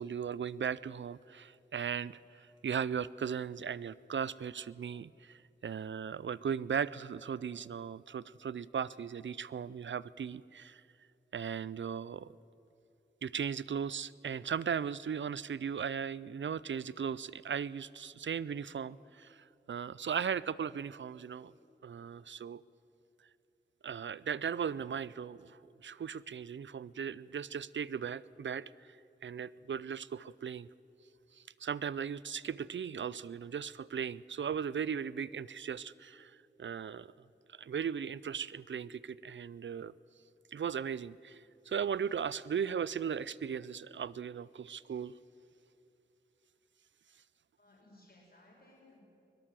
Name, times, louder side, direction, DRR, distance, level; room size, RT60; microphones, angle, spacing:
voice 1, 0.0-10.8 11.3-12.3 13.2-21.5 21.8-22.6 23.8-28.7 29.2-30.7 31.6-36.3 36.6-37.1 37.5-39.9 40.5-45.1, right 7 dB, 80° right, 20 dB, 0.4 m, -37 dB
voice 2, 47.6-49.0, left 1 dB, 55° left, -3 dB, 5.4 m, -61 dB
23.0 x 17.5 x 7.5 m, 2.8 s
wide cardioid pair, 70°, 19 cm